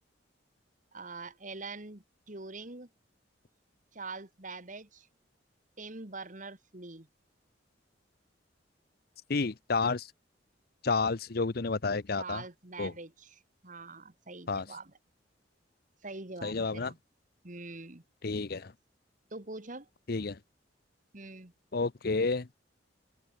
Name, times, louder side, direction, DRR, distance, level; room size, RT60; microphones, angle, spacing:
voice 1, 0.9-2.9 3.9-5.1 5.8-7.1 12.1-15.0 16.0-17.0 17.4-18.0 19.3-19.9 21.1-21.5, right 3 dB, 45° right, 2.4 m, -44 dB
voice 2, 9.3-10.1 10.8-12.4 12.8-12.9 14.5-14.6 16.4-16.9 18.2-18.7 20.1-20.4 21.7-22.5, left 4 dB, 55° left, 0.8 m, -30 dB
open air
head